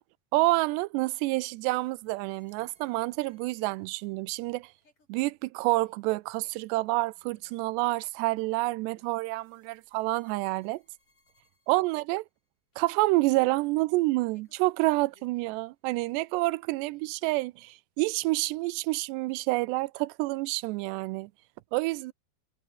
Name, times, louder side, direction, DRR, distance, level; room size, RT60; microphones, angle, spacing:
voice 1, 0.3-4.7 5.1-10.8 11.7-12.2 12.8-21.3 21.7-22.1, right 21 dB, 85° right, 2.8 m, -28 dB
sound 1, 1.5-12.4 12.7-15.6 15.9-17.2, left 3 dB, 30° left, 8.2 m, -68 dB
omnidirectional pair, 4.8 m